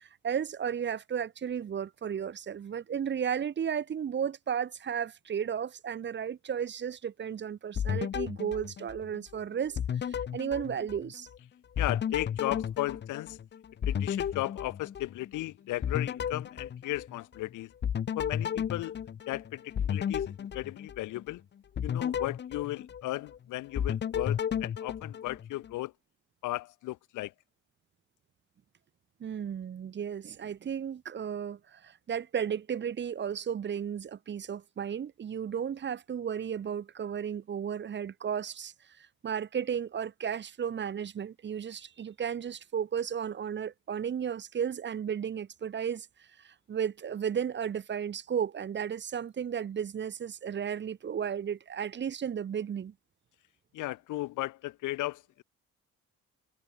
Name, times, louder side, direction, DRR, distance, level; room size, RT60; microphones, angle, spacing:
voice 1, 0.0-11.3 29.2-38.7 39.2-46.1 46.4-52.9, right 8 dB, 40° right, 0.7 m, -34 dB
sound 1, 7.8-9.4 9.8-11.4 11.8-15.4 15.8-17.4 17.8-21.3 21.8-23.4 23.8-25.7, left 8 dB, 35° left, 0.6 m, -33 dB
voice 2, 11.8-13.4 13.9-17.7 18.2-19.0 19.3-21.4 21.8-25.9 26.4-27.3 53.7-55.4, left 17 dB, 90° left, 0.9 m, -35 dB
cardioid pair, 90°, 30 cm